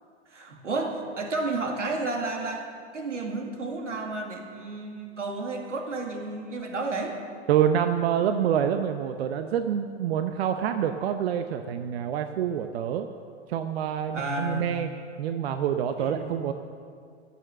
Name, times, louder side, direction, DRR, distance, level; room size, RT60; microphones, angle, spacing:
voice 1, 0.3-2.7 2.9-7.2 14.1-14.7 16.0-16.3, right 3 dB, 90° right, 2 dB, 2.2 m, -32 dB
voice 2, 7.5-13.1 13.5-14.9 15.2-16.5, right 9 dB, 60° right, 8 dB, 0.8 m, -26 dB
17.0 x 6.9 x 7.6 m, 2.2 s
hypercardioid pair, 115°, 35 cm